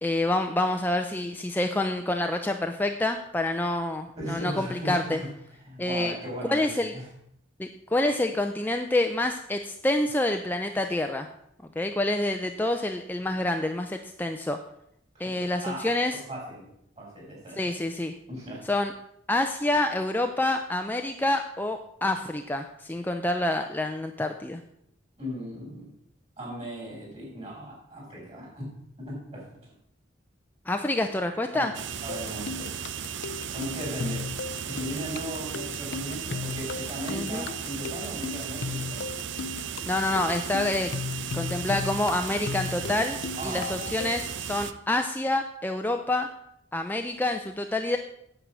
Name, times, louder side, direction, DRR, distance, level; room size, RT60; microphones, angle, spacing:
voice 1, 0.0-5.2 5.8-6.1 6.5-6.9 7.6-11.3 11.8-14.6 15.2-16.1 17.6-18.1 18.7-18.9 19.3-24.6 30.7-31.7 37.1-37.5 39.9-40.9 41.3-46.3 46.7-48.0, left 1 dB, 10° left, 5 dB, 0.5 m, -27 dB
voice 2, 4.2-5.3 5.6-7.1 15.1-15.9 16.3-16.7 17.0-17.7 18.3-18.6 25.2-25.9 26.4-29.4 31.5-31.7 32.0-32.7 33.5-34.3 34.6-39.1 43.4-43.8, equal, 35° right, -3 dB, 5.6 m, -37 dB
sound 1, 31.7-44.7, right 8 dB, 65° right, 0.6 m, -36 dB
sound 2, 32.1-44.4, left 5 dB, 60° left, 0.5 m, -36 dB
9.2 x 8.0 x 6.2 m, 0.74 s
head